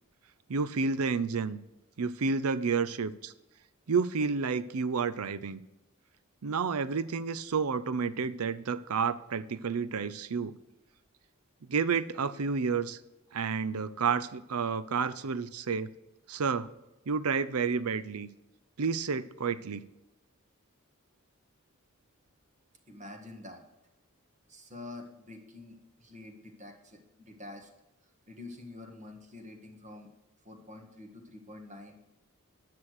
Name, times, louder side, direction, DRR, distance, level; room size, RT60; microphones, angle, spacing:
voice 1, 0.5-1.6 2.0-3.3 3.9-5.6 6.4-10.6 11.7-13.0 13.3-15.9 16.3-16.7 17.1-18.3 18.8-19.8, right 5 dB, 80° right, 15 dB, 0.6 m, -30 dB
voice 2, 22.9-23.6 24.5-27.7 28.3-30.1 30.4-32.0, left 2 dB, 35° right, 4 dB, 1.7 m, -47 dB
10.0 x 6.3 x 6.5 m, 0.93 s
head